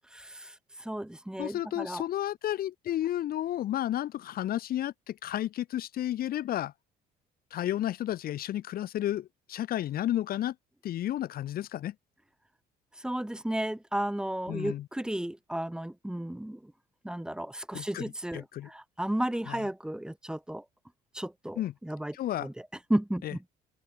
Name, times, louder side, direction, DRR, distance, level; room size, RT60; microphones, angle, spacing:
voice 1, 0.2-2.0 13.0-16.7 17.0-20.6 21.1-22.5 22.9-23.4, right 1 dB, 5° right, 2.7 m, -33 dB
voice 2, 1.4-6.7 7.5-10.5 10.8-11.9 14.5-14.8 17.7-18.7 19.5-19.6 21.6-21.7 22.1-22.5 23.2-23.3, left 12 dB, 60° left, 1.4 m, -32 dB
cardioid pair, 110°, 17 cm